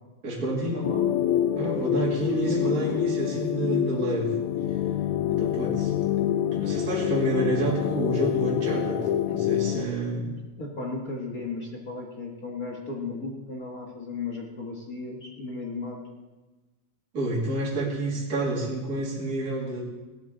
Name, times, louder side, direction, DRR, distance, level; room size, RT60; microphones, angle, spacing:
voice 1, 0.2-0.9 1.6-4.3 5.3-5.9 6.5-10.4 17.1-19.8, right 2 dB, 30° right, -5 dB, 2.6 m, -29 dB
voice 2, 0.7-1.0 1.7-1.9 2.5-3.0 10.6-16.0, left 3 dB, 40° left, -1 dB, 1.4 m, -35 dB
sound 1, 0.8-9.9, left 11 dB, 80° left, 1.9 m, -26 dB
17.5 x 12.5 x 3.8 m, 1.2 s
omnidirectional pair, 3.5 m